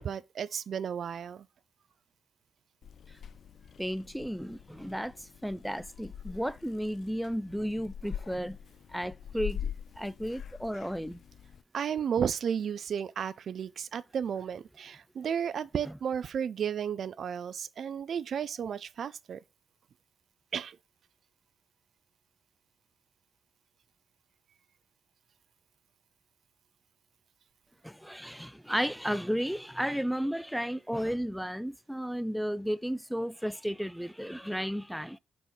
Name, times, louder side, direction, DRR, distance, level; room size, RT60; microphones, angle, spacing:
voice 1, 0.0-1.5 11.7-19.4 20.5-20.8, right 8 dB, 70° right, 0.3 m, -33 dB
Purr / Meow, 2.8-11.6, left 8 dB, 65° left, 0.4 m, -43 dB
voice 2, 3.8-8.6 8.9-9.7 10.0-11.2 15.9-16.0 27.8-35.2, equal, ahead, 0.4 m, -33 dB
4.6 x 4.1 x 5.1 m
supercardioid pair, 50°, 0 cm